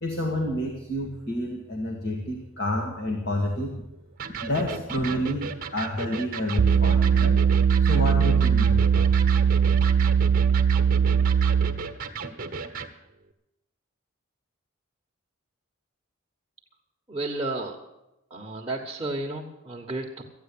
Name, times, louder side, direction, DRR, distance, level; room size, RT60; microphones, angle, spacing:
voice 1, 0.0-3.8 4.4-7.4 7.8-9.1, left 1 dB, 50° left, 0 dB, 2.0 m, -29 dB
Electric guitar, 4.2-12.9, right 5 dB, 40° right, 1.3 m, -35 dB
sound 1, 6.6-11.9, right 7 dB, 75° right, 0.5 m, -20 dB
voice 2, 17.1-17.7 18.3-20.2, right 2 dB, 20° right, 1 dB, 1.3 m, -32 dB
14.0 x 9.4 x 8.6 m, 0.93 s
head